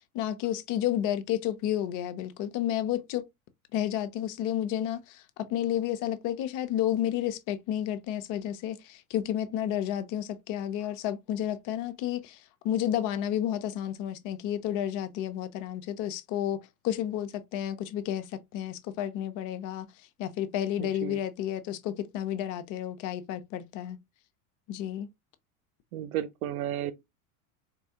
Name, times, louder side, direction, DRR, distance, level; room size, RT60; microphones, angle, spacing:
voice 1, 0.1-3.2 3.7-19.9 20.2-24.0 24.7-25.1, left 11 dB, 45° left, 0.7 m, -31 dB
voice 2, 20.8-21.2 25.9-26.9, right 12 dB, 80° right, 0.7 m, -33 dB
4.2 x 2.3 x 2.8 m
hypercardioid pair, 110°, 43 cm